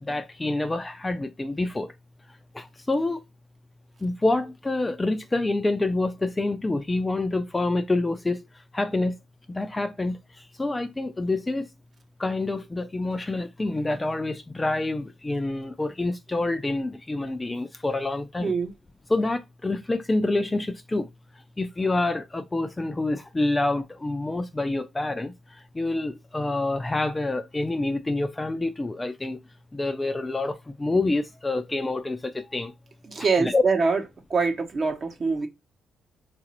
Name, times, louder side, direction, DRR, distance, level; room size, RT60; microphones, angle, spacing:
voice 1, 0.0-1.9 2.5-3.2 4.0-8.5 8.7-9.2 9.5-11.7 12.2-18.5 19.1-21.1 21.6-25.3 25.7-29.4 29.7-32.7 33.4-33.6, left 2 dB, 15° left, 0.4 m, -27 dB
voice 2, 18.4-18.7 33.1-34.0 34.3-35.5, right 4 dB, 40° right, 0.9 m, -24 dB
3.9 x 2.5 x 2.9 m
cardioid pair, 90°, 0 cm